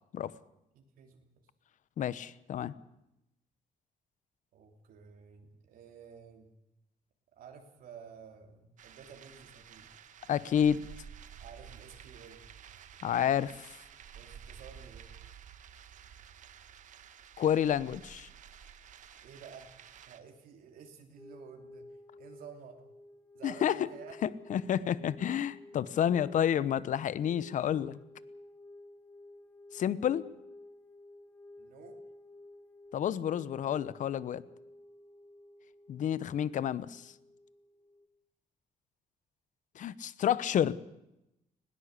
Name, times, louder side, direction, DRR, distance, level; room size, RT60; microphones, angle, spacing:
voice 1, 0.7-1.3 4.5-6.5 7.3-9.9 11.4-12.4 14.1-15.1 19.2-19.7 20.1-21.9 22.2-22.8 23.3-24.2 24.8-24.9 31.6-32.0, right 6 dB, 80° right, 3 dB, 3.3 m, -52 dB
voice 2, 2.0-2.7 10.3-10.8 13.0-13.6 17.4-18.3 23.4-23.8 24.2-28.0 29.7-30.3 32.9-34.4 35.9-37.1 39.8-40.8, left 9 dB, 60° left, 17 dB, 0.9 m, -30 dB
sound 1, 8.8-20.2, right 8 dB, 60° right, 1.3 m, -52 dB
sound 2, 21.2-38.1, left 1 dB, 10° left, 1.4 m, -53 dB
20.0 x 18.0 x 8.2 m, 0.89 s
cardioid pair, 120°, 15 cm